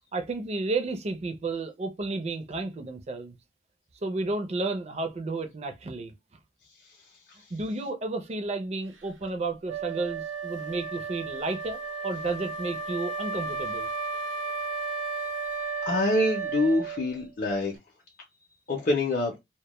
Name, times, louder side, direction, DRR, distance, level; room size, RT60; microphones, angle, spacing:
voice 1, 0.1-3.4 4.0-6.1 7.5-13.9, right 3 dB, 35° right, 0.4 m, -32 dB
Wind instrument woodwind instrument, 9.7-17.2, right 4 dB, 80° right, 0.6 m, -34 dB
voice 2, 15.9-17.7 18.7-19.3, left 2 dB, 45° left, 0.5 m, -25 dB
2.1 x 2.1 x 2.9 m
head